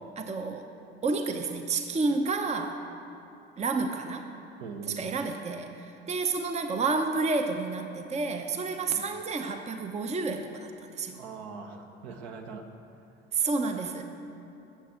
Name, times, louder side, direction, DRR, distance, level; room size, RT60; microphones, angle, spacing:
voice 1, 0.2-0.7 1.0-2.8 3.6-4.3 4.9-11.2 13.3-14.0, right 4 dB, 20° right, 6 dB, 0.8 m, -30 dB
voice 2, 4.6-5.0 8.9-9.0 11.2-12.7, right 4 dB, 60° right, 3 dB, 1.2 m, -41 dB
11.0 x 7.7 x 6.9 m, 2.9 s
figure-of-eight pair, 55°, 32 cm